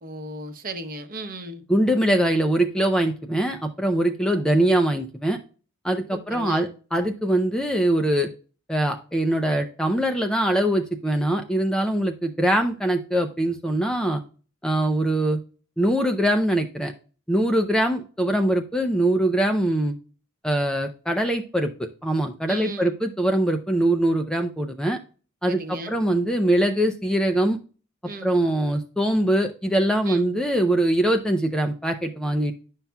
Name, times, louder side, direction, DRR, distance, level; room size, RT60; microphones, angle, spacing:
voice 1, 0.0-1.6 6.1-6.7 22.5-23.0 25.5-26.0 28.0-28.3 30.1-30.3, right 2 dB, 40° right, 0.9 m, -35 dB
voice 2, 1.7-5.4 5.8-8.3 8.7-14.2 14.6-15.4 15.8-16.9 17.3-20.0 20.4-21.7 22.0-25.0 25.4-27.6 28.2-32.5, right 1 dB, 5° left, 0.5 m, -22 dB
10.5 x 5.7 x 2.2 m
head